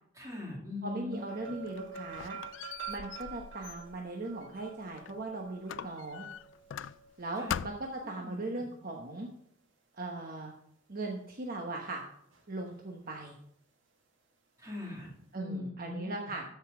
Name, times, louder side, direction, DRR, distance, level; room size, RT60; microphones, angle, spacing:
voice 1, 0.1-1.2 7.4-7.6 8.2-8.6 14.6-16.3, left 2 dB, 15° right, -3 dB, 2.9 m, -41 dB
voice 2, 0.8-2.4 2.9-6.3 7.2-9.3 9.9-10.5 10.9-12.0 12.5-13.3 15.3-16.4, right 2 dB, 45° right, 0 dB, 1.1 m, -39 dB
sound 1, 1.1-8.4 12.3-12.7 13.0-13.1, right 7 dB, 75° right, 2.1 m, -48 dB
Squeak, 1.4-5.2 5.7-7.2 7.5-8.1, left 8 dB, 70° left, 0.3 m, -42 dB
13.5 x 5.4 x 5.0 m, 0.69 s
head